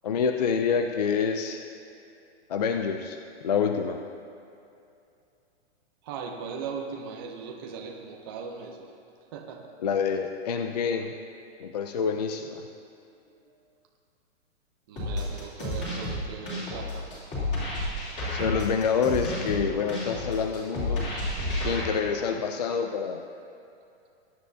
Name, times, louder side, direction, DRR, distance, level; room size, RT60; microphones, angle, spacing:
voice 1, 0.0-1.6 2.5-4.0 9.8-11.1 11.6-12.7 18.3-21.1 21.6-23.2, left 6 dB, 40° left, 5 dB, 0.4 m, -27 dB
voice 2, 6.0-8.9 9.3-9.7 13.5-13.6 14.9-17.1 17.4-17.5, right 5 dB, 20° right, 0 dB, 0.6 m, -39 dB
sound 1, 15.0-21.8, left 1 dB, 20° left, 3.0 m, -31 dB
20.5 x 10.0 x 2.7 m, 2.6 s
hypercardioid pair, 175°, 34 cm